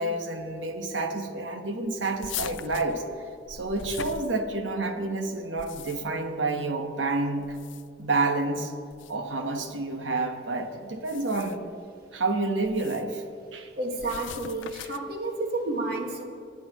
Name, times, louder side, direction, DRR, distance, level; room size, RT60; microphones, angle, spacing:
voice 1, 0.0-3.0 3.5-7.6 8.0-8.7 9.1-11.6 12.1-13.2 13.5-13.7, right 2 dB, 85° right, 5 dB, 1.2 m, -29 dB
sound 1, 2.2-4.8 5.4-6.3 7.4-8.1 8.9-9.2 10.9-11.7 12.6-13.1 14.0-15.2, left 9 dB, 85° left, 0.5 m, -40 dB
voice 2, 13.8-16.2, right 2 dB, 55° right, 1 dB, 1.7 m, -30 dB
18.5 x 10.0 x 3.0 m, 2.3 s
head